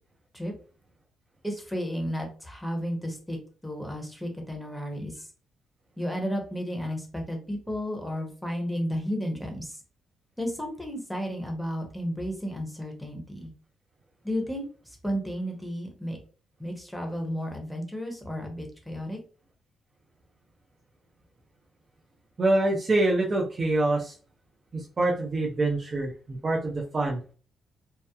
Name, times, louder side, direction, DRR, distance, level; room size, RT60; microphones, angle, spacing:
voice 1, 1.4-5.3 6.0-9.8 10.4-13.5 14.2-16.2 16.6-19.2, equal, ahead, 2 dB, 0.8 m, -33 dB
voice 2, 22.4-24.1 24.7-27.2, right 2 dB, 35° right, -2 dB, 0.5 m, -25 dB
2.8 x 2.1 x 2.2 m, 0.39 s
cardioid pair, 90°, 0 cm